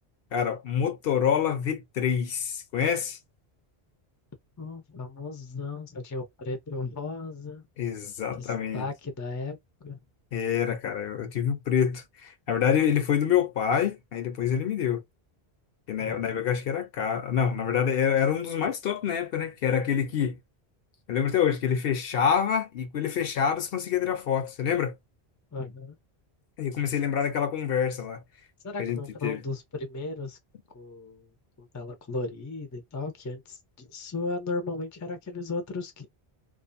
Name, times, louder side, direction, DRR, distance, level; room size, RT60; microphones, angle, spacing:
voice 1, 0.3-3.2 7.8-8.9 10.3-15.0 15.9-20.4 21.1-24.9 26.6-28.2 28.8-29.4, left 8 dB, 65° left, 0.8 m, -26 dB
voice 2, 4.6-7.7 8.3-10.0 16.0-16.4 25.5-26.0 28.6-30.4 30.7-31.3 31.6-36.1, left 3 dB, 25° left, 0.4 m, -35 dB
2.4 x 2.4 x 2.5 m
omnidirectional pair, 1.1 m